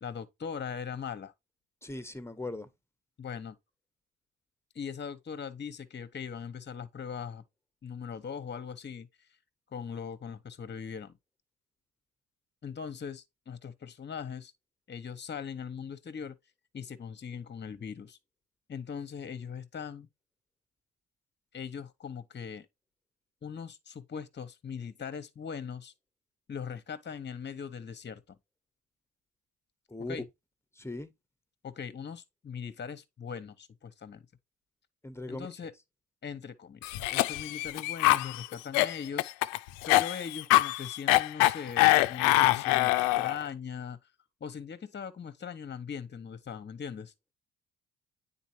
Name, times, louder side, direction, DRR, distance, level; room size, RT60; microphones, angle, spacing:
voice 1, 0.0-1.3 3.2-3.6 4.7-7.4 7.8-9.1 9.7-11.2 12.6-14.5 14.9-16.4 16.7-18.2 18.7-20.1 21.5-22.7 23.4-25.9 26.5-28.4 30.1-30.2 31.6-34.2 35.3-35.7 36.2-39.3 39.9-44.0 44.4-47.1, left 6 dB, 35° left, 1.1 m, -40 dB
voice 2, 1.8-2.7 29.9-30.2 30.7-31.1 35.0-35.5, left 2 dB, 10° left, 1.2 m, -39 dB
Cough, 36.8-43.4, left 18 dB, 85° left, 0.6 m, -24 dB
9.2 x 4.1 x 2.9 m
supercardioid pair, 60°, 32 cm